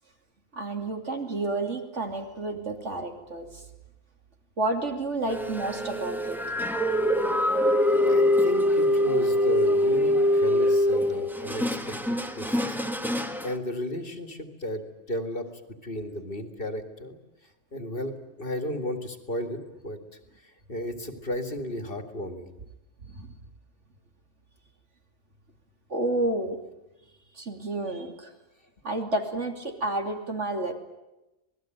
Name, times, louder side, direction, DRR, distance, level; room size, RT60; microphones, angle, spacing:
voice 1, 0.5-3.6 4.6-6.4 23.0-23.4 25.9-26.6 27.3-28.3 28.8-30.7, right 2 dB, 65° right, 4 dB, 3.3 m, -30 dB
sound 1, 5.3-13.5, left 1 dB, ahead, 1.4 m, -24 dB
voice 2, 7.8-12.8 13.1-15.5 15.8-17.2 17.7-20.0 20.4-22.5, left 1 dB, 45° left, 7 dB, 2.4 m, -34 dB
27.0 x 19.5 x 9.2 m, 0.96 s
omnidirectional pair, 1.3 m